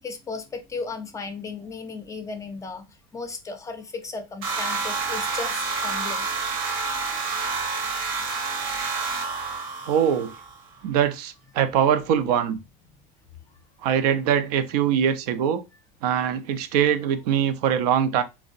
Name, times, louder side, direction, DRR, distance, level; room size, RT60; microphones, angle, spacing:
voice 1, 0.0-6.3, left 4 dB, 15° left, 0.4 m, -35 dB
sound 1, 4.4-10.6, right 4 dB, 70° right, 0.8 m, -28 dB
voice 2, 9.9-10.3 10.8-12.6 13.8-15.6 16.0-18.2, right 9 dB, 90° right, 0.4 m, -22 dB
2.6 x 2.0 x 2.4 m
supercardioid pair, 130°, 19 cm